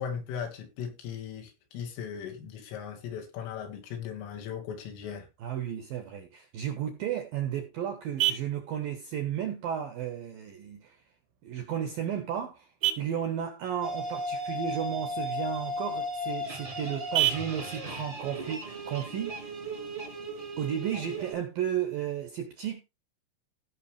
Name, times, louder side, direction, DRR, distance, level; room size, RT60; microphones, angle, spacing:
voice 1, 0.0-5.3, left 7 dB, 75° left, 4.8 m, -38 dB
voice 2, 5.4-11.0 11.4-12.7 13.0-19.4 20.6-22.8, right 9 dB, 70° right, 2.2 m, -33 dB
Vehicle horn car horn honking, 6.9-19.9, right 14 dB, 90° right, 4.5 m, -37 dB
sound 1, 13.8-21.3, equal, 20° right, 1.2 m, -36 dB
16.5 x 6.1 x 3.3 m
omnidirectional pair, 5.8 m